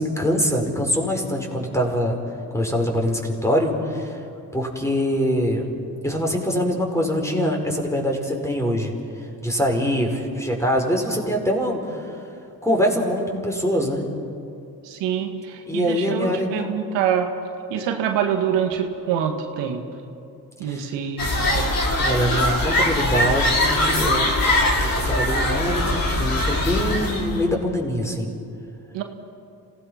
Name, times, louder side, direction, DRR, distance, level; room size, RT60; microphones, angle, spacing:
voice 1, 0.0-2.2 2.5-4.2 4.5-5.7 6.0-8.9 9.4-12.2 12.6-14.0 15.7-16.7 20.6-20.9 22.0-24.5 24.9-28.3, equal, 5° left, 0 dB, 5.2 m, -23 dB
voice 2, 14.8-17.3 17.7-19.8 20.6-21.7 28.9-29.0, right 8 dB, 90° right, 5 dB, 1.8 m, -25 dB
sound 1, 21.2-27.4, left 1 dB, 50° left, 4.9 m, -21 dB
27.0 x 17.5 x 5.8 m, 2.7 s
supercardioid pair, 50°, 42 cm